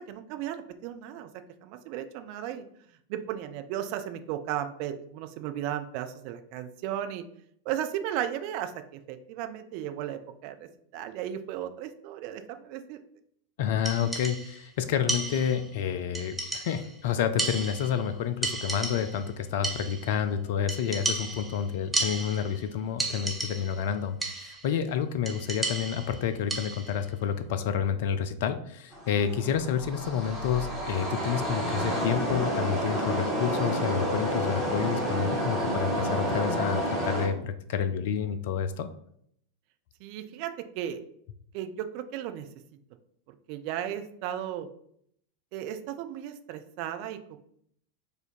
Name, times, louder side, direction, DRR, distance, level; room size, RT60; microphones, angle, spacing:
voice 1, 0.1-1.3 1.6-2.6 3.1-7.2 7.7-10.6 10.9-13.0 40.0-41.0 41.5-42.5 43.3-44.7 45.5-47.4, right 11 dB, 45° right, 8 dB, 0.4 m, -35 dB
voice 2, 13.6-38.9, left 8 dB, 50° left, 10 dB, 0.4 m, -29 dB
sound 1, 13.8-14.6 15.1-15.8 16.1-17.0 17.4-18.1 18.4-19.3 19.6-20.2 20.7-22.6 23.0-23.9 24.2-24.7 25.3-27.0, right 2 dB, 5° right, 0.7 m, -33 dB
sound 2, 28.9-37.3, equal, 10° left, 1.7 m, -30 dB
4.9 x 2.5 x 4.2 m, 0.68 s
figure-of-eight pair, 90°, 0 cm